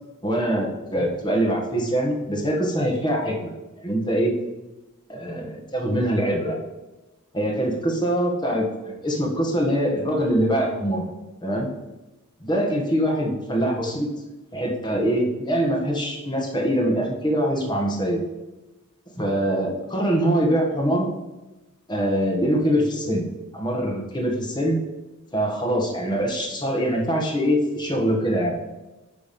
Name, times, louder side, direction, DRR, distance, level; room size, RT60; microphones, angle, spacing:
voice 1, 0.2-3.5 3.8-4.3 5.1-6.6 7.3-11.1 11.4-11.7 12.4-14.1 14.5-18.2 19.2-21.1 21.9-23.3 23.5-24.8 25.3-28.6, equal, 20° left, 0 dB, 1.4 m, -23 dB
9.9 x 3.5 x 5.3 m, 1.1 s
head